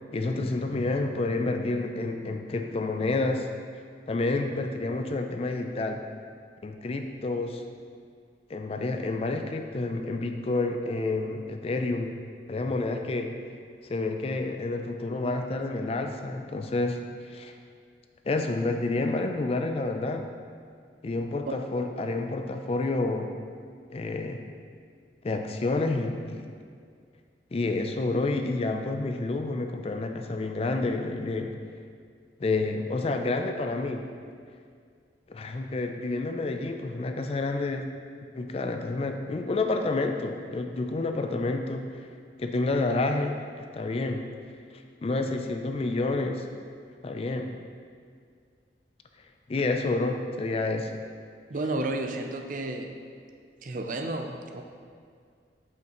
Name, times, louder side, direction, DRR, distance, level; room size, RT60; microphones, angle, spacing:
voice 1, 0.1-3.5 4.1-6.0 6.6-7.6 8.5-12.1 12.5-13.3 13.9-17.0 17.3-17.5 18.3-20.2 21.0-23.3 23.9-24.4 25.2-26.5 27.5-31.5 32.4-34.0 35.3-37.9 38.3-42.1 42.4-44.2 45.0-46.4 47.0-47.5 49.5-50.9, left 2 dB, 35° left, 5 dB, 0.4 m, -29 dB
voice 2, 51.5-52.9 53.6-54.6, right 2 dB, 50° right, 4 dB, 0.5 m, -32 dB
7.9 x 5.7 x 3.0 m, 2.2 s
head